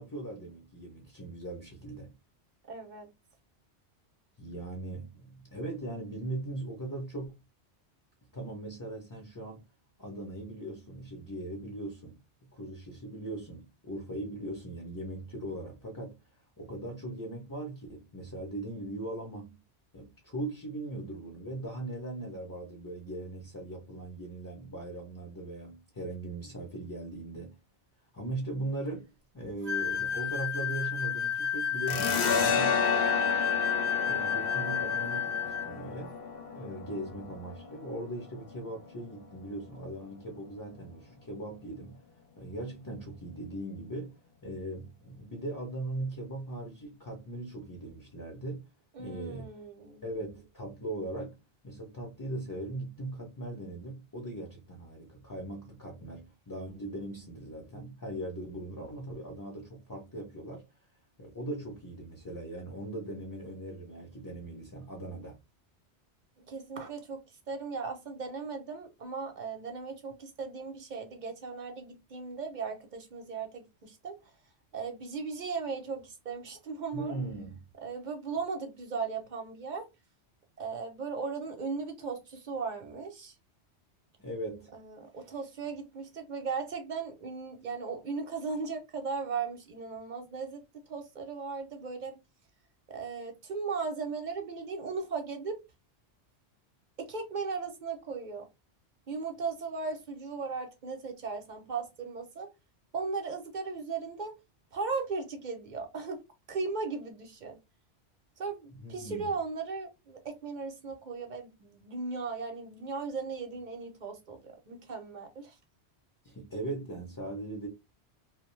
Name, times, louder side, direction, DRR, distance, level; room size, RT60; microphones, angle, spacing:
voice 1, 0.0-2.1 4.4-7.4 8.3-9.6 10.0-12.2 12.5-16.2 16.6-19.6 19.9-27.6 28.1-29.1 29.3-32.8 34.0-36.2 36.5-42.0 42.4-44.1 44.4-48.6 49.0-49.5 50.0-51.4 51.6-60.6 61.2-65.4 76.9-77.6 84.2-84.7 108.7-109.3 116.2-117.7, right 1 dB, 25° left, 0.5 m, -39 dB
voice 2, 2.7-3.1 32.9-33.3 48.9-50.0 66.4-67.2 67.5-74.3 74.7-77.1 77.8-79.9 80.6-83.3 84.7-90.6 90.9-92.2 92.9-95.6 97.0-98.4 99.1-102.5 102.9-104.3 104.7-106.2 106.5-107.6 108.4-115.6, right 4 dB, 50° right, 0.7 m, -37 dB
sound 1, 29.7-35.7, left 8 dB, 85° right, 0.9 m, -31 dB
sound 2, 31.9-39.1, left 5 dB, 60° left, 0.8 m, -32 dB
2.5 x 2.1 x 3.1 m
omnidirectional pair, 1.2 m